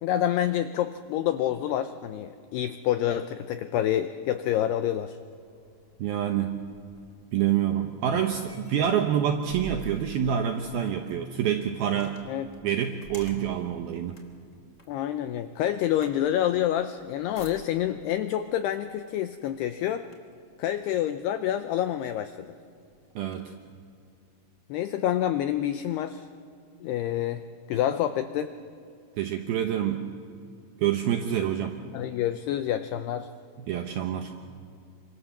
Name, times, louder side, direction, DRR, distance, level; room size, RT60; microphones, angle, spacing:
voice 1, 0.0-5.2 12.3-12.5 14.9-20.0 20.6-22.5 24.7-26.3 26.8-27.4 27.7-28.5 31.9-33.3, left 11 dB, 85° left, 9 dB, 2.3 m, -27 dB
sound 1, 5.2-18.1 18.9-19.1 19.5-20.5 21.2-21.3 21.7-23.4, right 1 dB, 20° left, 2.6 m, -49 dB
voice 2, 6.0-6.6 7.3-12.2 12.6-14.2 23.2-23.5 29.2-30.0 30.8-31.7 33.7-34.3, right 9 dB, 75° right, 5 dB, 2.2 m, -27 dB
27.5 x 26.0 x 7.3 m, 2.4 s
omnidirectional pair, 5.6 m